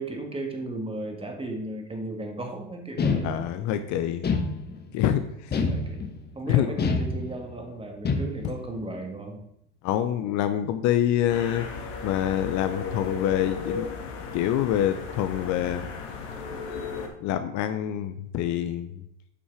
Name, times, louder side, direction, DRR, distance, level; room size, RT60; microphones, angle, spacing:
voice 1, 0.0-3.3 5.0-5.2 5.5-6.1 6.3-9.4, right 2 dB, 15° right, 3 dB, 1.9 m, -35 dB
sound 1, 3.0-3.7 4.2-5.0 5.5-6.3 6.8-7.6 8.0-8.6, left 4 dB, 25° left, 1.1 m, -27 dB
voice 2, 3.2-4.3 4.9-5.5 6.5-6.7 8.4-8.5 9.8-11.7 12.0-13.9 14.3-15.8 17.2-19.0, left 11 dB, 50° left, 10 dB, 0.7 m, -26 dB
sound 2, 11.3-17.1, left 5 dB, 65° left, 1.9 m, -35 dB
8.7 x 5.5 x 4.7 m, 0.77 s
hypercardioid pair, 95°, 38 cm